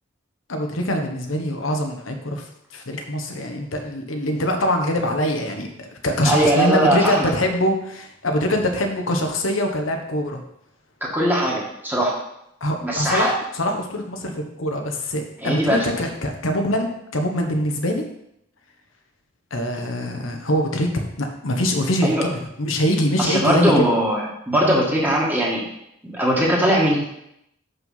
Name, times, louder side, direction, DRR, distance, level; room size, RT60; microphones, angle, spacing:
voice 1, 0.5-2.5 2.7-10.4 12.6-18.0 19.5-23.9, equal, 85° left, 3 dB, 1.1 m, -23 dB
voice 2, 6.2-7.3 11.1-12.2 12.8-13.3 15.4-15.8 22.0-22.3 23.2-25.6 26.1-27.0, right 1 dB, 10° right, -3 dB, 1.6 m, -20 dB
5.7 x 5.6 x 5.6 m, 0.78 s
head